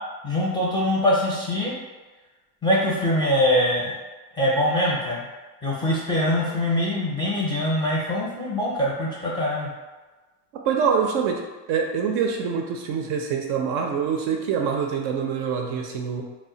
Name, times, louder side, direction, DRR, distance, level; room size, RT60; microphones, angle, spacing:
voice 1, 0.2-1.8 2.6-3.9 4.4-5.3 5.6-9.7, left 1 dB, 10° left, -6 dB, 0.5 m, -23 dB
voice 2, 10.7-11.4 11.7-16.2, right 6 dB, 55° right, 2 dB, 0.5 m, -25 dB
2.1 x 2.1 x 3.7 m, 1.2 s
supercardioid pair, 115°, 50 cm